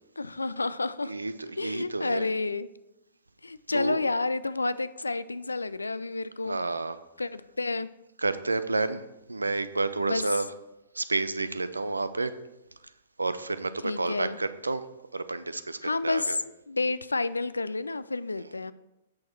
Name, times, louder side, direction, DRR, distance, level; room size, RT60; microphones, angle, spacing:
voice 1, 0.2-1.1 1.6-2.7 3.4-6.6 7.2-7.9 10.0-10.2 13.8-14.4 15.8-16.4 16.7-18.7, left 3 dB, 75° left, 16 dB, 0.3 m, -30 dB
voice 2, 1.0-2.3 3.7-4.0 6.4-7.0 8.2-9.0 9.3-10.5 10.9-12.3 13.2-14.9 15.1-16.4, right 3 dB, 75° right, 13 dB, 0.5 m, -30 dB
8.5 x 6.3 x 4.5 m, 0.93 s
figure-of-eight pair, 110°, 0 cm